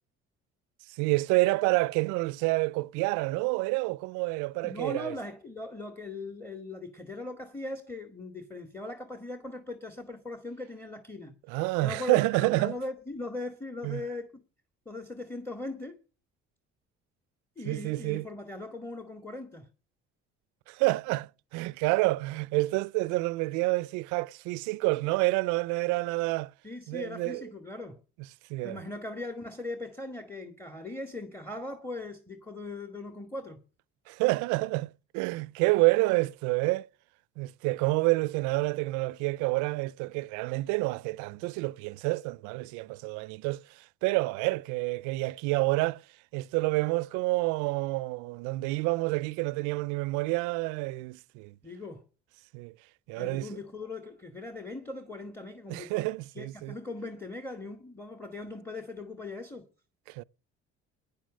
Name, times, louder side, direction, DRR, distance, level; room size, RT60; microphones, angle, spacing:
voice 1, 0.9-5.2 11.5-12.8 13.8-14.0 17.6-18.3 20.7-26.5 26.9-27.4 28.5-28.8 34.1-36.9 37.4-46.0 46.3-51.5 52.5-52.7 53.1-53.5 55.7-56.8 60.1-60.2, right 23 dB, 85° right, 0.5 m, -28 dB
voice 2, 4.6-14.4 14.9-15.9 17.6-19.7 26.6-28.0 28.6-33.6 51.6-52.0 53.2-56.0 56.4-59.7, left 2 dB, 10° left, 2.1 m, -39 dB
10.0 x 10.0 x 6.3 m
supercardioid pair, 75°, 29 cm